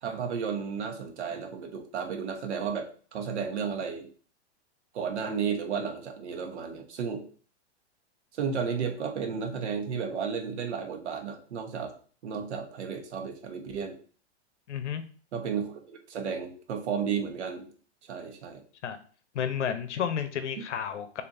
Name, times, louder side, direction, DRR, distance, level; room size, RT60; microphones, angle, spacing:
voice 1, 0.0-4.1 4.9-7.3 8.3-11.9 12.2-14.0 15.3-17.6 18.1-18.6, right 6 dB, 70° right, 4 dB, 1.2 m, -33 dB
voice 2, 14.7-15.0 18.8-19.0 19.3-21.2, left 8 dB, 85° left, 10 dB, 0.8 m, -31 dB
6.8 x 2.7 x 2.6 m, 0.43 s
hypercardioid pair, 145°, 34 cm